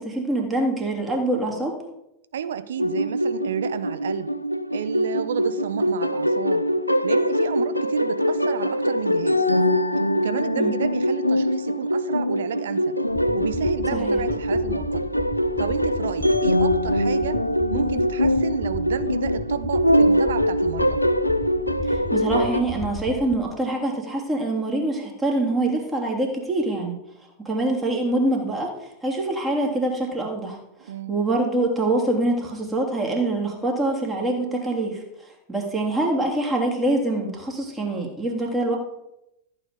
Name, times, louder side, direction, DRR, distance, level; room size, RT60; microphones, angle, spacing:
voice 1, 0.0-1.8 10.6-10.7 13.9-14.2 21.9-26.9 27.4-28.7 29.0-30.6 31.1-35.0 35.5-38.8, right 2 dB, 10° right, -1 dB, 3.2 m, -24 dB
voice 2, 2.3-4.3 4.7-6.7 7.0-9.5 10.1-13.0 13.3-15.1 15.6-17.4 17.7-21.0 30.8-31.2, right 8 dB, 65° right, 12 dB, 0.9 m, -31 dB
sound 1, 2.8-22.6, equal, 90° left, 0.6 m, -23 dB
sound 2, 13.1-23.4, left 3 dB, 30° left, 1.6 m, -35 dB
14.5 x 8.9 x 5.1 m, 0.87 s
figure-of-eight pair, 90°, 0 cm